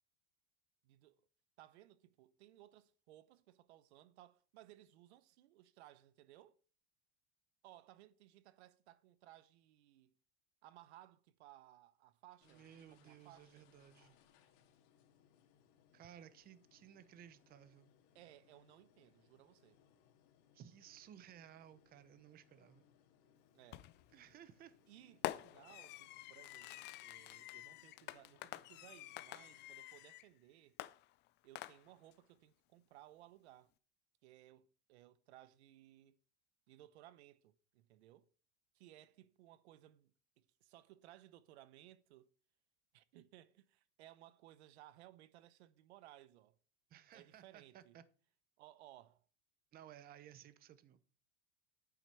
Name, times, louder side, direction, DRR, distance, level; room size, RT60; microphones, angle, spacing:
voice 1, 0.8-1.2 1.6-6.6 7.6-10.1 10.6-13.7 18.1-19.8 23.5-23.9 24.9-30.8 31.4-33.7 34.2-36.2 36.7-38.2 38.7-40.1 40.4-42.3 42.9-46.6 47.1-48.0 48.6-49.2, right 14 dB, 85° right, 0.9 m, -61 dB
sound 1, 12.4-29.8, left 8 dB, 55° left, 2.1 m, -71 dB
voice 2, 12.4-14.2 15.9-17.9 20.5-22.8 24.1-24.8 46.9-48.0 49.7-51.0, right 10 dB, 30° right, 0.8 m, -58 dB
Fireworks, 23.7-24.1 25.2-30.3 30.8-32.1, left 16 dB, 35° left, 0.5 m, -47 dB
9.6 x 8.8 x 4.5 m
supercardioid pair, 145°, 33 cm